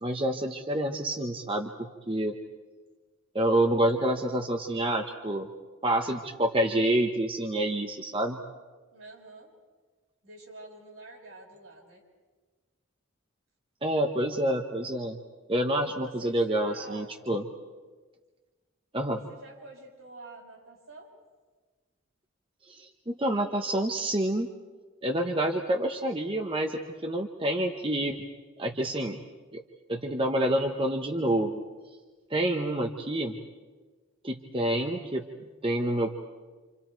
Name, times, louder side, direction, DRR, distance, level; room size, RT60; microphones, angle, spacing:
voice 1, 0.0-2.4 3.3-5.5 5.8-8.4 13.8-15.2 15.5-17.4 18.9-19.2 22.7-24.5 25.0-28.2 28.6-29.2 29.5-29.6 29.9-31.6 32.3-33.4 34.2-36.1, right 1 dB, 25° right, 3 dB, 1.0 m, -28 dB
voice 2, 8.9-9.5 10.2-12.0 16.0-17.1 19.1-21.1, right 2 dB, 80° right, -2 dB, 6.4 m, -48 dB
28.0 x 28.0 x 4.6 m, 1.3 s
head